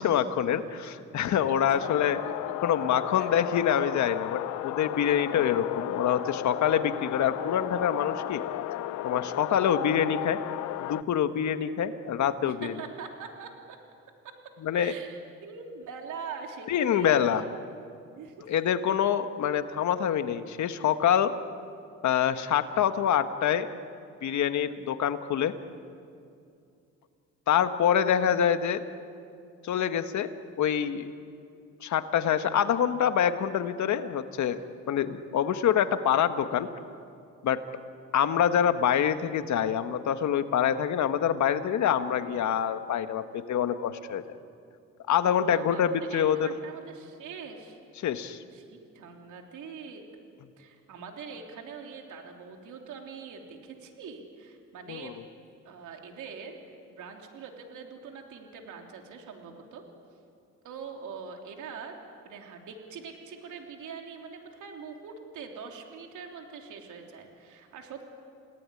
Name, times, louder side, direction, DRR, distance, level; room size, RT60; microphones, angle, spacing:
voice 1, 0.0-2.2 2.6-8.4 8.7-10.4 10.8-12.7 14.6-14.9 16.7-17.4 18.5-21.3 22.0-23.7 24.2-25.5 27.5-28.8 29.6-30.3 30.6-31.1 31.8-34.6 34.9-36.7 37.4-37.6 38.1-44.2 45.1-46.5 48.0-48.4 54.9-55.1, left 9 dB, 70° left, 9 dB, 1.5 m, -26 dB
voice 2, 1.5-1.9 3.2-3.3 12.4-13.8 14.2-14.3 14.7-17.5 18.1-18.5 45.3-47.8 48.5-50.0 50.6-55.2 55.6-59.8 60.6-61.9 62.2-68.1, right 5 dB, 80° right, 2 dB, 3.3 m, -43 dB
sound 1, 1.7-11.0, left 15 dB, 90° left, 0.6 m, -34 dB
29.0 x 18.5 x 9.9 m, 2.5 s
cardioid pair, 90°, 30 cm